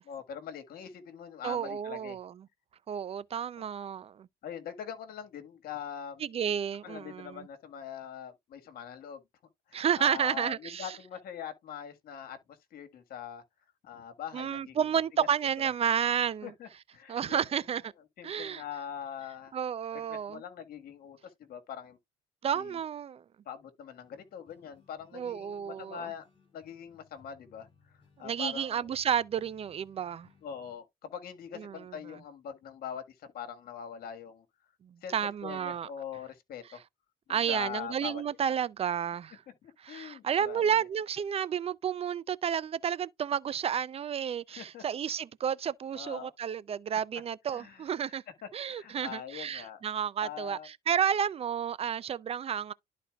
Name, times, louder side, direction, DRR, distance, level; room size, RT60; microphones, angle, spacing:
voice 1, 0.1-2.2 3.6-3.7 4.4-6.3 6.8-9.2 9.7-13.4 13.8-14.8 15.1-15.3 15.6-15.7 16.4-17.5 18.2-19.5 19.9-22.0 22.5-22.8 23.4-26.3 26.5-28.9 30.4-34.4 35.0-35.2 35.4-36.8 37.3-38.5 39.6-40.9 44.5-44.8 45.9-46.3 47.5-48.2 48.4-49.8 50.2-50.7, left 8 dB, 65° left, 1.6 m, -43 dB
voice 2, 1.4-2.3 2.9-4.3 6.2-7.5 9.7-10.9 14.3-16.5 17.1-17.9 18.2-18.6 19.5-20.4 22.4-23.2 25.1-26.1 28.2-30.3 31.6-31.9 34.8-35.9 37.3-39.4 39.8-48.2 48.5-52.7, right 8 dB, 35° right, 0.4 m, -31 dB
sound 1, 24.0-30.7, left 5 dB, 30° left, 5.0 m, -65 dB
12.0 x 4.2 x 2.3 m
cardioid pair, 110°, 17 cm